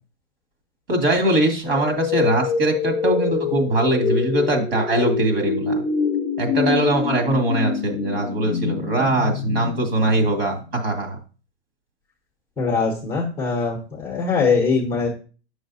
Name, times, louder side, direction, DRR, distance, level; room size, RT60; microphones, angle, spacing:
voice 1, 0.9-5.8 6.4-11.2, right 1 dB, 55° right, 3 dB, 2.3 m, -21 dB
sound 1, 1.7-10.6, left 6 dB, 35° left, 0.8 m, -25 dB
voice 2, 12.6-15.1, left 4 dB, 5° left, -1 dB, 0.9 m, -22 dB
8.7 x 6.2 x 2.7 m, 0.37 s
hypercardioid pair, 160°, 35 cm